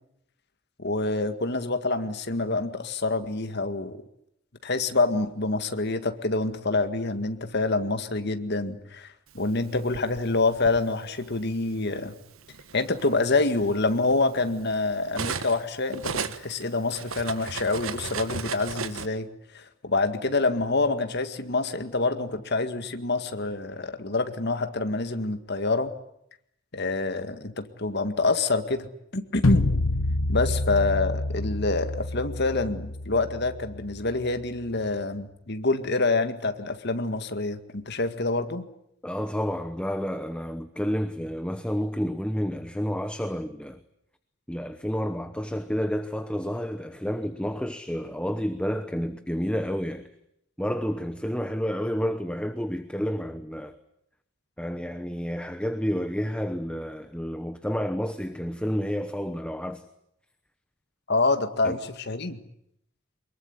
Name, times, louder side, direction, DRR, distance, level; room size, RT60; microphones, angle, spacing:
voice 1, 0.8-4.0 4.6-12.1 12.7-19.3 19.5-25.9 26.7-28.9 29.1-29.7 30.3-38.7 61.1-62.4, left 3 dB, 55° left, 2.0 m, -27 dB
Cutlery silverware, 9.5-10.8 11.8-12.0 12.4-15.6 15.9-19.1, right 5 dB, 80° right, 1.4 m, -35 dB
sound 1, 29.4-34.5, left 2 dB, 75° left, 1.0 m, -28 dB
voice 2, 39.0-43.8 44.5-50.1 50.6-53.8 54.6-59.9 61.6-61.8, equal, 5° left, 1.0 m, -30 dB
24.0 x 22.0 x 9.9 m
head